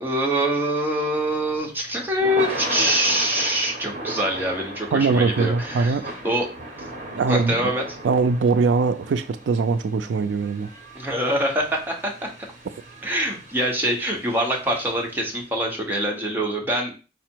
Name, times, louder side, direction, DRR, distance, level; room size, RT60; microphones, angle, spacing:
voice 1, 0.0-6.0 6.2-6.5 7.3-7.8 10.9-12.1 13.0-16.9, equal, 10° right, 1.0 m, -24 dB
Thunder / Rain, 1.2-15.5, right 2 dB, 45° right, 1.0 m, -36 dB
voice 2, 4.9-6.1 7.1-7.7 8.0-10.7, right 4 dB, 90° right, 0.4 m, -21 dB
4.9 x 2.0 x 4.4 m
head